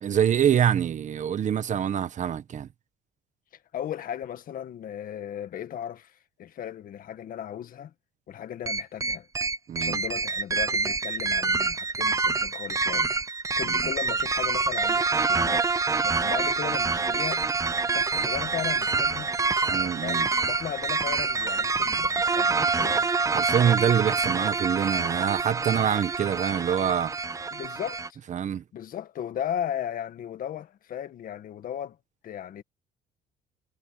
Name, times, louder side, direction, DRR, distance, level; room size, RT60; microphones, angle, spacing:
voice 1, 0.0-2.7 9.7-10.0 19.7-20.3 23.3-27.1 28.3-28.6, right 9 dB, 45° right, 1.4 m, -25 dB
voice 2, 3.5-7.9 8.3-9.3 9.8-13.1 13.6-17.4 17.9-19.3 19.7-23.1 27.5-28.0 28.7-32.0 32.2-32.6, left 10 dB, 55° left, 1.8 m, -36 dB
sound 1, 8.7-28.1, right 4 dB, 20° right, 0.6 m, -26 dB
cardioid pair, 110°, 17 cm